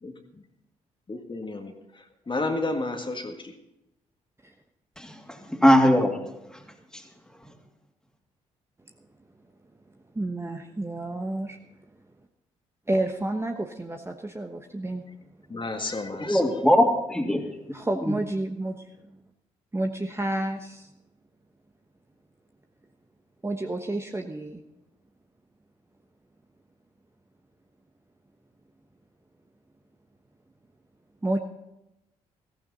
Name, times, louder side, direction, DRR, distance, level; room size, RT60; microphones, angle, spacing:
voice 1, 0.0-0.4 1.1-3.5 15.5-16.6, left 2 dB, 30° left, 4 dB, 1.8 m, -32 dB
voice 2, 5.5-6.1 16.3-17.4 18.0-18.1, equal, 5° left, 3 dB, 2.8 m, -20 dB
voice 3, 10.1-11.6 12.9-15.0 17.7-18.8 19.7-20.9 23.4-24.6 31.2-31.4, right 1 dB, 15° right, 4 dB, 1.2 m, -30 dB
15.5 x 15.0 x 4.1 m, 0.90 s
hypercardioid pair, 45°, 17 cm